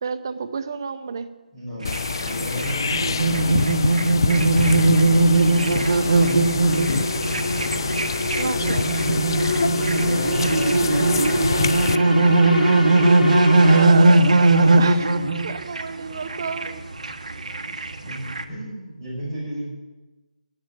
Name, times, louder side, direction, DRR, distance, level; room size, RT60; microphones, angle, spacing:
voice 1, 0.0-1.3 8.4-8.9 13.6-15.1 15.4-16.8, right 5 dB, 30° right, 10 dB, 0.7 m, -30 dB
voice 2, 1.5-2.0 2.2-3.6 9.9-12.6 18.1-19.7, equal, 5° left, -11 dB, 6.5 m, -33 dB
sound 1, 1.8-12.0, left 5 dB, 30° left, 0.4 m, -26 dB
sound 2, 1.8-18.4, right 2 dB, 55° right, 1.4 m, -19 dB
sound 3, 4.0-13.9, equal, 70° left, 2.4 m, -28 dB
11.5 x 10.0 x 9.0 m, 1.1 s
figure-of-eight pair, 170°, 5 cm